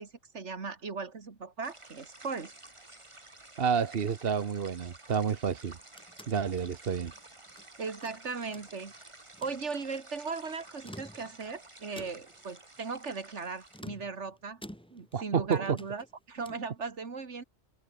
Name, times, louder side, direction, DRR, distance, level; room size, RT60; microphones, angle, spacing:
voice 1, 0.0-2.5 7.8-8.9 9.4-14.6 14.9-17.4, right 4 dB, 75° right, 2.3 m, -38 dB
Small side stream flowing into old disused canal, 1.6-13.8, right 2 dB, 25° right, 2.3 m, -52 dB
voice 2, 3.6-5.8 6.3-7.1 15.1-15.8, right 6 dB, 55° right, 1.1 m, -29 dB
sound 1, 5.6-7.7 8.0-9.0 9.3-9.6 10.7-11.5 12.0-12.5 13.7-15.2 15.5-16.7, equal, 5° left, 6.7 m, -50 dB
omnidirectional pair, 1.2 m